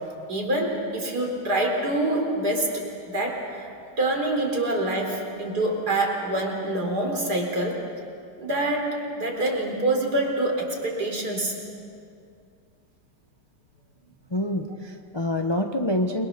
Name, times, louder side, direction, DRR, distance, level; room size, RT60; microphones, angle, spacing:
voice 1, 0.3-2.8 3.1-3.7 4.0-7.8 8.4-8.9 9.1-11.5, right 1 dB, 45° right, 0 dB, 4.6 m, -26 dB
voice 2, 14.3-16.3, left 1 dB, 20° left, 3 dB, 0.7 m, -26 dB
29.5 x 22.5 x 6.9 m, 2.4 s
omnidirectional pair, 2.3 m